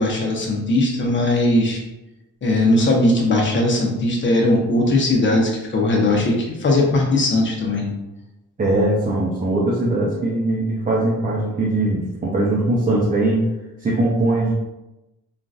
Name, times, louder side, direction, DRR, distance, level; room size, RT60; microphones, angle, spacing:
voice 1, 0.0-1.8 2.4-7.9, left 2 dB, 40° left, -1 dB, 0.9 m, -19 dB
voice 2, 8.6-13.4 13.8-14.5, right 2 dB, 25° right, -5 dB, 0.7 m, -20 dB
3.7 x 2.5 x 2.4 m, 0.96 s
cardioid pair, 90°, 30 cm